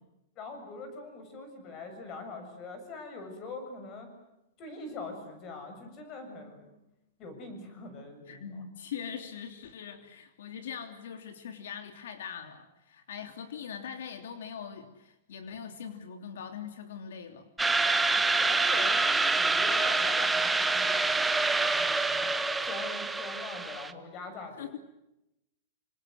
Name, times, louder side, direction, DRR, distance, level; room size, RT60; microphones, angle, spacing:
voice 1, 0.4-4.1 4.6-6.7 7.2-8.6 18.2-21.4 21.8-22.3 22.6-24.8, left 3 dB, 25° left, 7 dB, 7.0 m, -43 dB
voice 2, 8.3-17.5 24.6-24.8, left 7 dB, 75° left, 7 dB, 3.1 m, -42 dB
sound 1, 17.6-23.9, right 3 dB, 5° right, 0.9 m, -26 dB
28.5 x 26.0 x 8.0 m, 0.89 s
supercardioid pair, 175°, 0 cm